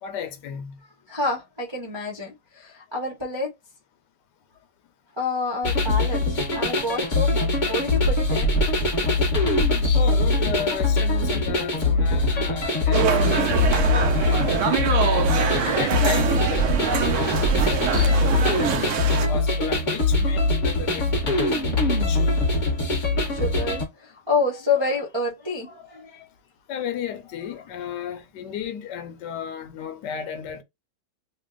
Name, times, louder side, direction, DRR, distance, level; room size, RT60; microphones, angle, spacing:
voice 1, 0.0-0.8 10.0-14.6 15.0-17.4 17.9-18.2 18.6-21.6 22.1-22.4 26.7-30.6, left 7 dB, 85° left, 1.3 m, -34 dB
voice 2, 1.1-3.5 5.2-8.8 23.3-26.3, left 3 dB, 25° right, 0.6 m, -28 dB
sound 1, 5.6-23.8, left 2 dB, 30° left, 1.2 m, -22 dB
sound 2, 12.9-19.3, right 7 dB, 65° right, 0.8 m, -25 dB
3.4 x 2.2 x 3.6 m
omnidirectional pair, 1.8 m